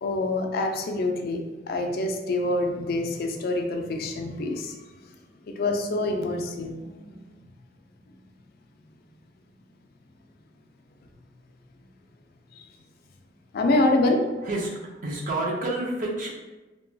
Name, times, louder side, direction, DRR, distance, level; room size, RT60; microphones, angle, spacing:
voice 1, 0.0-4.7 5.5-7.3 13.5-14.2, left 2 dB, 55° left, 3 dB, 0.3 m, -26 dB
voice 2, 14.4-16.3, right 2 dB, 45° right, -2 dB, 0.5 m, -29 dB
2.9 x 2.2 x 2.6 m, 1.1 s
head